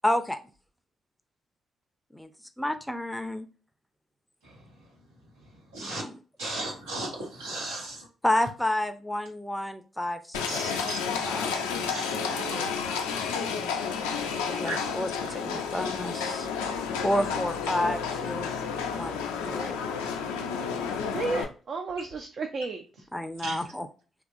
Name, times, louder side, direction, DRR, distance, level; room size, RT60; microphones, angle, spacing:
voice 1, 0.0-0.4 2.1-2.3 2.6-3.5 5.8-6.6 8.2-10.6 11.2-11.6 14.3-16.5 17.0-18.5 18.9-19.8 23.1-23.9, left 1 dB, 5° left, 0.4 m, -30 dB
voice 2, 5.7-6.0 6.4-8.0 10.5-11.2 11.9-12.2 14.6-14.8 23.4-23.6, right 2 dB, 85° right, 0.9 m, -35 dB
Livestock farm animals working animals, 10.3-21.4, left 6 dB, 85° left, 0.3 m, -31 dB
voice 3, 12.2-12.8 21.1-22.8, right 3 dB, 55° right, 0.4 m, -33 dB
2.9 x 2.2 x 2.5 m
hypercardioid pair, 40°, 0 cm